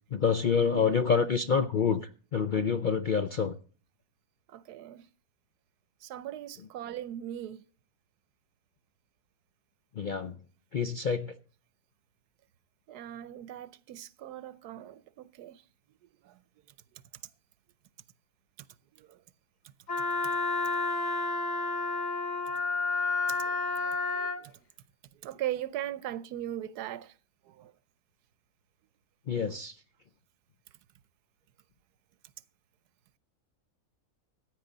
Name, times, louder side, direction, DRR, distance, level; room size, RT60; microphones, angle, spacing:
voice 1, 0.1-3.5 9.9-10.4 10.7-11.4 29.3-29.8, left 6 dB, 60° left, 0.5 m, -27 dB
voice 2, 4.5-5.0 6.0-7.6 12.9-15.6 16.3-16.4 19.0-19.2 23.3-23.6 23.8-24.5 25.2-27.1 27.5-27.7 29.5-29.6, right 12 dB, 90° right, 1.2 m, -39 dB
Wind instrument woodwind instrument, 19.9-24.4, left 3 dB, 35° left, 0.8 m, -30 dB
15.0 x 9.3 x 3.9 m
omnidirectional pair, 1.6 m